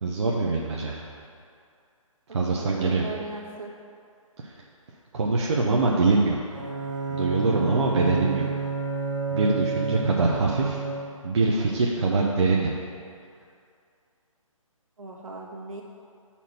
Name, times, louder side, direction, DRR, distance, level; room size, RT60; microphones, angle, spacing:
voice 1, 0.0-1.0 2.3-3.1 4.4-4.6 5.1-6.4 7.1-8.5 9.3-10.8 11.2-12.7, right 3 dB, 55° right, -2 dB, 0.7 m, -23 dB
voice 2, 2.5-3.7 15.0-15.8, right 3 dB, 75° right, -2 dB, 1.3 m, -38 dB
Bowed string instrument, 6.5-11.3, right 5 dB, 35° right, 1.3 m, -30 dB
5.9 x 4.3 x 5.9 m, 2.4 s
figure-of-eight pair, 140°, 18 cm